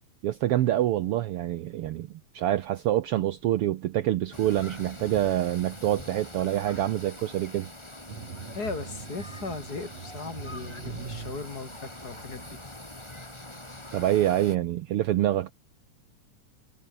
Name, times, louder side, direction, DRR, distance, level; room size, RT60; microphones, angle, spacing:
voice 1, 0.2-2.1 2.3-7.7 13.9-15.5, right 13 dB, 85° right, 1.2 m, -26 dB
sound 1, 4.3-14.6, left 1 dB, 10° left, 2.6 m, -44 dB
sound 2, 8.1-12.6, right 5 dB, 55° right, 4.4 m, -42 dB
voice 2, 8.5-12.6, left 3 dB, 30° left, 3.9 m, -37 dB
omnidirectional pair, 3.6 m